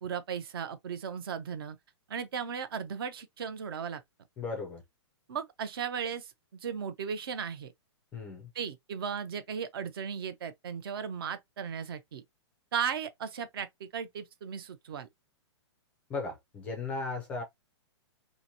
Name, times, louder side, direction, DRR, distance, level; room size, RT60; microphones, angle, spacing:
voice 1, 0.0-1.8 2.1-4.0 5.3-6.3 6.6-7.7 8.5-12.2 12.7-15.1, right 7 dB, 55° right, 0.6 m, -36 dB
voice 2, 4.4-4.8 8.1-8.5 16.1-17.4, left 3 dB, 10° left, 0.4 m, -36 dB
2.8 x 2.5 x 2.7 m
hypercardioid pair, 170°, 15 cm